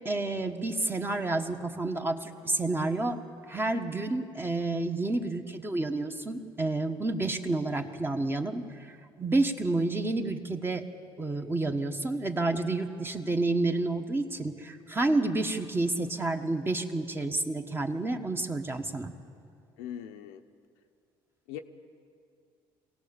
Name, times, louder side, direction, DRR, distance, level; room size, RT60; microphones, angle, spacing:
voice 1, 0.0-3.2 3.5-8.6 9.2-10.8 11.2-19.1, right 2 dB, 20° right, 5 dB, 1.5 m, -29 dB
voice 2, 19.8-20.4 21.5-21.6, left 10 dB, 90° left, 5 dB, 0.9 m, -40 dB
23.0 x 17.5 x 7.1 m, 2.4 s
supercardioid pair, 75°, 11 cm